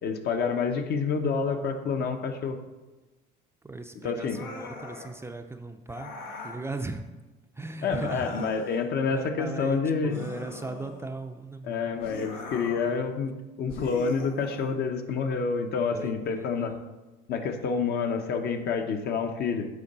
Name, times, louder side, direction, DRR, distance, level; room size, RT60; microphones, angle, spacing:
voice 1, 0.0-2.6 4.0-4.4 7.8-10.2 11.6-16.7 17.3-19.7, left 5 dB, 55° left, 6 dB, 0.9 m, -28 dB
voice 2, 3.6-6.1 6.4-7.1 7.6-8.4 9.1-11.9 15.9-16.8, right 3 dB, 15° right, 6 dB, 0.5 m, -38 dB
sound 1, 4.2-5.2 5.9-6.7 7.8-8.8 10.1-11.2 12.0-13.0 13.7-14.7, left 4 dB, 85° left, 1.3 m, -41 dB
8.4 x 3.9 x 5.4 m, 1.1 s
cardioid pair, 110°, 20 cm